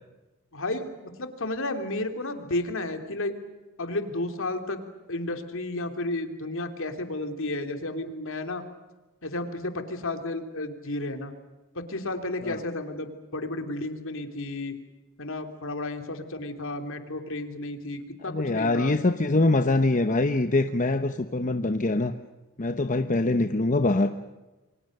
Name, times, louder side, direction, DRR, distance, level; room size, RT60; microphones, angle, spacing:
voice 1, 0.5-0.9 1.2-3.3 3.8-4.8 5.1-8.6 9.2-11.3 11.7-14.7 15.2-18.9, left 2 dB, 65° left, 7 dB, 3.2 m, -32 dB
voice 2, 18.2-22.1 22.6-24.1, left 2 dB, 35° left, 8 dB, 0.9 m, -24 dB
29.0 x 24.0 x 6.7 m, 1.1 s
head